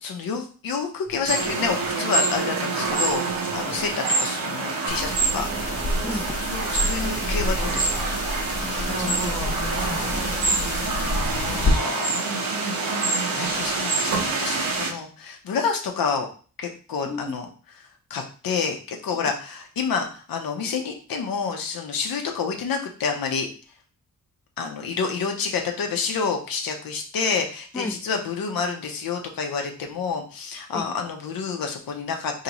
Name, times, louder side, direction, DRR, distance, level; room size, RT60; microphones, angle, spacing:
voice 1, 0.0-5.8 6.1-6.2 6.5-8.0 8.7-9.0 11.4-12.3 13.3-16.3 16.6-17.5 18.1-23.5 24.6-32.4, left 5 dB, 85° left, 3 dB, 0.8 m, -29 dB
sound 1, 1.1-11.1, right 4 dB, 40° right, 0.6 m, -38 dB
sound 2, 1.3-14.9, right 3 dB, 80° right, 1.1 m, -26 dB
sound 3, 4.9-11.7, left 2 dB, 45° left, 1.0 m, -29 dB
voice 2, 6.0-6.4 8.6-11.3 11.6-11.8 17.0-17.4 27.7-28.0 30.7-30.9, left 3 dB, 10° left, 5 dB, 0.3 m, -34 dB
4.0 x 2.9 x 2.9 m, 0.40 s
cardioid pair, 75°, 34 cm